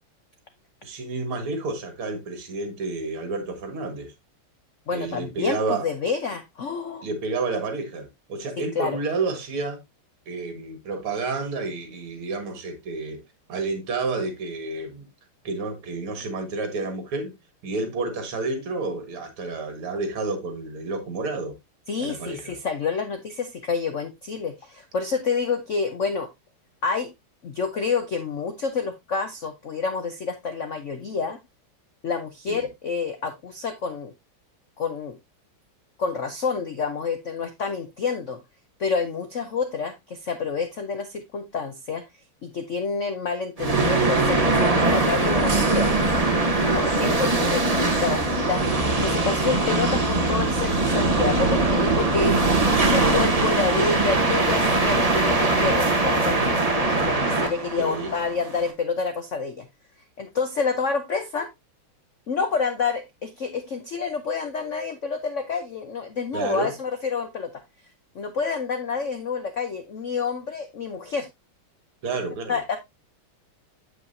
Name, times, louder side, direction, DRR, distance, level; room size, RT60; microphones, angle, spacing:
voice 1, 0.8-4.1 4.9-5.9 7.0-9.8 10.3-13.2 13.5-15.1 15.4-17.3 17.6-21.6 22.0-22.6 32.5-32.6 49.5-49.6 57.8-58.1 66.3-66.7 72.0-72.6, right 3 dB, 75° right, 2.6 m, -30 dB
voice 2, 4.9-7.0 8.8-9.0 21.9-26.3 26.8-27.1 27.4-31.4 32.0-34.1 34.8-35.2 36.0-38.4 38.8-42.0 42.4-45.9 46.6-48.6 49.0-52.4 52.7-59.7 60.2-61.5 62.3-67.6 68.1-71.3 72.5-72.8, left 5 dB, 70° left, 0.7 m, -28 dB
sound 1, 43.6-58.7, right 2 dB, 20° right, 1.1 m, -21 dB
8.2 x 7.5 x 2.7 m
omnidirectional pair, 2.4 m